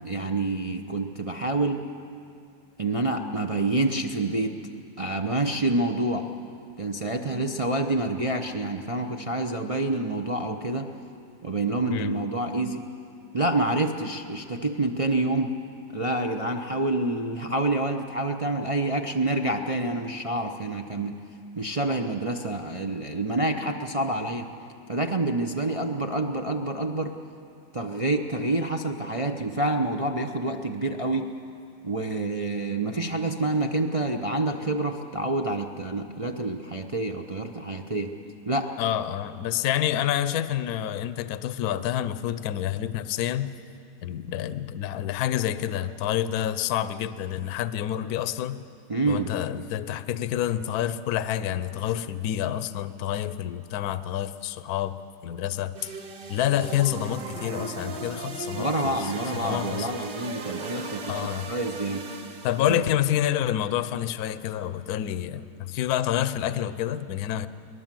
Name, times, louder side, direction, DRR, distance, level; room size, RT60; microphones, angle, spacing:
voice 1, 0.0-1.8 2.8-4.5 5.0-6.3 6.8-10.9 11.4-12.9 13.3-15.6 15.9-21.2 21.6-24.5 24.9-27.2 27.7-31.3 31.8-38.1 38.5-38.7 48.9-49.3 58.6-62.0 62.7-62.8, right 2 dB, 40° right, 3 dB, 0.4 m, -27 dB
voice 2, 38.8-43.5 44.0-48.6 49.1-55.0 55.2-55.9 56.3-59.1 59.4-59.9 61.1-61.5 62.4-67.5, left 11 dB, 65° left, 13 dB, 1.1 m, -28 dB
sound 1, 55.7-62.9, right 3 dB, 75° right, 2.3 m, -37 dB
22.5 x 19.5 x 7.6 m, 2.5 s
omnidirectional pair, 1.9 m